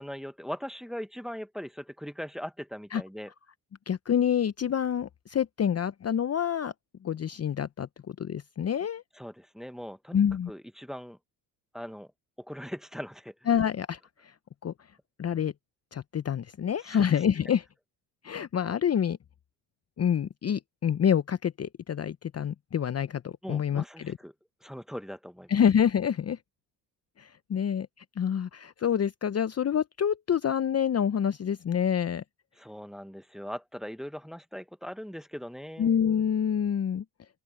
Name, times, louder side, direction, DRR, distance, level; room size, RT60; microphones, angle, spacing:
voice 1, 0.0-3.3 9.1-10.2 10.5-11.2 11.7-12.1 12.4-13.5 16.8-17.2 23.4-24.3 24.6-25.6 32.6-35.9, equal, ahead, 1.4 m, -40 dB
voice 2, 3.9-6.7 7.0-9.0 10.1-10.5 13.5-14.3 14.6-14.7 15.2-15.5 15.9-17.6 18.2-19.2 20.0-24.2 25.5-26.4 27.2-32.2 35.8-37.0, left 8 dB, 30° left, 0.8 m, -27 dB
open air
hypercardioid pair, 60°, 46 cm